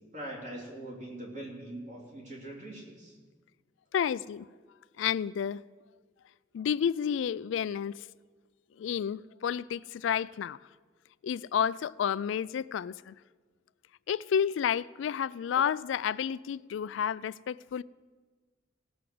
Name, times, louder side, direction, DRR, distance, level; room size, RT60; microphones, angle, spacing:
voice 1, 0.1-3.1, right 1 dB, 40° right, 3.0 m, -42 dB
voice 2, 3.9-4.5 5.0-5.6 6.5-7.9 8.8-10.6 11.2-13.1 14.1-17.8, left 8 dB, 85° left, 0.3 m, -30 dB
17.0 x 6.1 x 7.7 m
head